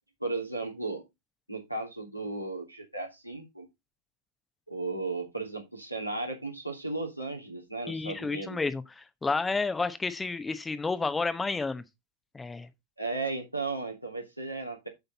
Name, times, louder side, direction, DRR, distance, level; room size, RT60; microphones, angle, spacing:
voice 1, 0.2-1.1 1.5-3.7 4.7-8.6 13.0-14.9, right 3 dB, 90° right, 2.9 m, -35 dB
voice 2, 7.9-11.8 12.3-12.7, left 3 dB, 10° left, 0.9 m, -31 dB
8.2 x 6.9 x 4.1 m
figure-of-eight pair, 90°, 0 cm